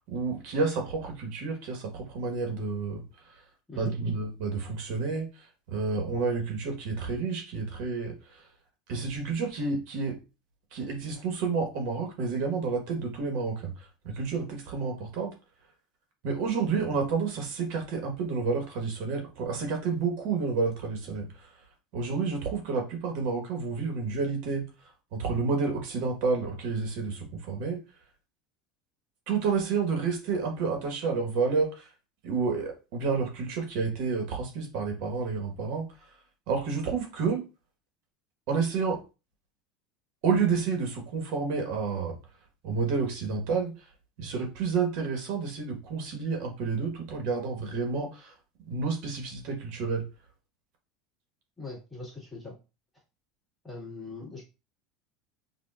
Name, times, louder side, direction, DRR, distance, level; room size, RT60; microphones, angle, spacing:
voice 1, 0.1-3.4 3.7-8.5 8.9-10.1 10.7-15.3 16.2-21.5 21.9-24.7 25.1-27.8 29.3-31.9 32.2-36.1 36.5-37.4 38.5-39.0 40.2-42.2 42.6-43.9 44.2-48.3 48.7-50.0, right 4 dB, 65° right, 2 dB, 1.3 m, -30 dB
voice 2, 51.6-52.6 53.6-54.4, left 3 dB, 10° left, -6 dB, 1.9 m, -41 dB
5.4 x 2.6 x 2.4 m, 0.29 s
supercardioid pair, 130°, 0 cm